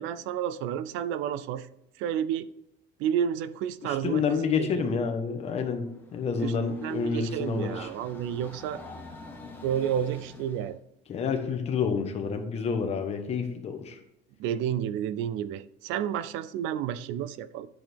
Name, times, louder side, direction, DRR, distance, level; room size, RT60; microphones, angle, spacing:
voice 1, 0.0-1.7 2.0-2.5 3.0-4.7 6.4-6.5 6.8-8.8 9.6-10.8 14.4-17.7, right 9 dB, 70° right, 15 dB, 0.5 m, -31 dB
voice 2, 3.8-7.9 11.1-14.0, left 5 dB, 30° left, 5 dB, 1.2 m, -29 dB
Train, 5.9-10.8, left 2 dB, 10° left, 1.2 m, -47 dB
10.5 x 6.3 x 3.5 m, 0.81 s
cardioid pair, 165°, 21 cm